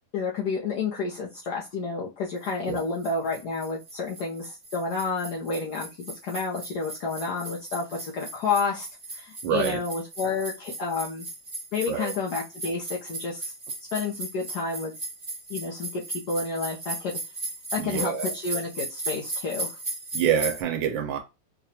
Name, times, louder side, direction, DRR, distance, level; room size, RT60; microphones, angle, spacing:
voice 1, 0.1-8.9 9.1-11.3 11.7-13.5 13.9-14.9 15.5-17.2 17.7-19.8, left 4 dB, 65° left, 1.3 m, -30 dB
sound 1, 2.4-20.6, right 3 dB, 30° right, 0.8 m, -37 dB
voice 2, 9.4-9.8 11.9-12.1 17.8-18.3 20.1-21.2, right 8 dB, 85° right, 1.4 m, -26 dB
4.9 x 2.3 x 2.7 m
omnidirectional pair, 2.0 m